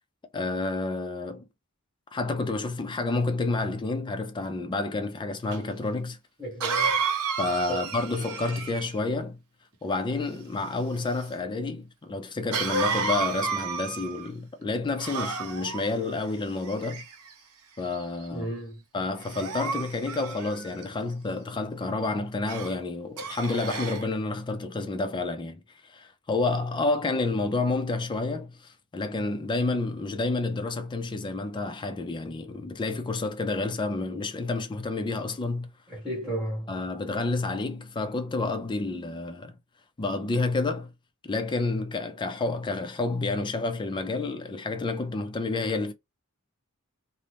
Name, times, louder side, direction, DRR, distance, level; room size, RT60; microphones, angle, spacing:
voice 1, 0.3-1.5 2.1-6.2 7.4-9.4 9.8-17.0 17.8-18.5 18.9-35.7 36.7-39.5 40.0-40.9 41.2-45.9, left 3 dB, 20° left, 0.4 m, -29 dB
Cough, 5.5-5.6 6.6-9.0 12.5-14.3 15.0-15.9 16.7-17.3 17.9-18.2 19.2-20.8 22.5-22.7 23.2-24.1, right 4 dB, 85° right, 0.7 m, -31 dB
voice 2, 6.4-7.0 7.7-7.9 18.3-18.8 35.9-36.7, right 1 dB, ahead, 1.1 m, -33 dB
2.6 x 2.0 x 3.2 m
head